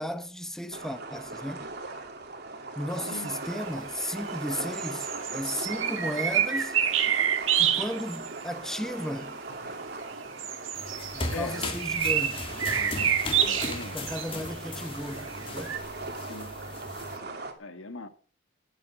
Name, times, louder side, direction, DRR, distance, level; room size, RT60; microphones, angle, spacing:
voice 1, 0.0-1.7 2.8-6.8 7.5-9.4 11.1-12.5 13.9-15.8, equal, ahead, 0.9 m, -35 dB
sound 1, 0.7-17.5, right 3 dB, 55° right, 2.6 m, -39 dB
sound 2, 3.3-3.4 3.9-4.3 4.7-8.4 9.2-9.3 10.0-15.8, right 9 dB, 80° right, 1.8 m, -28 dB
sound 3, 10.7-17.2, left 2 dB, 25° left, 2.5 m, -37 dB
voice 2, 11.3-11.8 12.7-14.2 16.2-16.5 17.1-18.1, left 3 dB, 90° left, 1.6 m, -41 dB
19.5 x 8.3 x 6.0 m
head